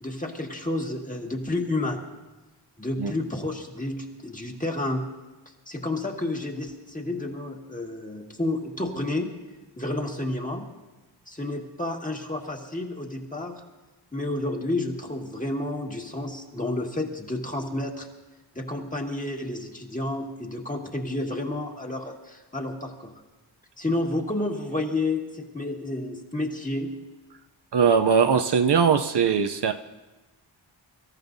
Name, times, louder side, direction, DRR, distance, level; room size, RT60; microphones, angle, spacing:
voice 1, 0.0-2.0 2.8-5.0 5.7-9.3 9.8-10.7 11.3-13.6 14.1-18.1 18.6-23.2 23.8-26.9, left 2 dB, 15° left, 1.8 m, -30 dB
voice 2, 27.7-29.7, right 6 dB, 60° right, 0.6 m, -20 dB
25.0 x 14.0 x 2.7 m
wide cardioid pair, 75°, 46 cm